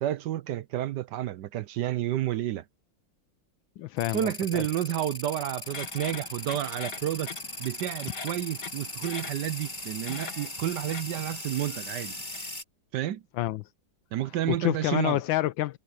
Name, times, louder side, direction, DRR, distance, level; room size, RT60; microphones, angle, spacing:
voice 1, 0.0-2.6 4.1-7.3 7.6-12.2 12.9-13.2 14.1-15.2, right 12 dB, 70° right, 1.2 m, -30 dB
voice 2, 3.8-4.6 13.3-13.7 14.5-15.8, left 15 dB, 85° left, 1.4 m, -28 dB
sound 1, 4.0-12.6, left 1 dB, 25° left, 5.0 m, -39 dB
sound 2, 5.6-12.6, left 5 dB, 60° left, 2.5 m, -43 dB
omnidirectional pair, 2.1 m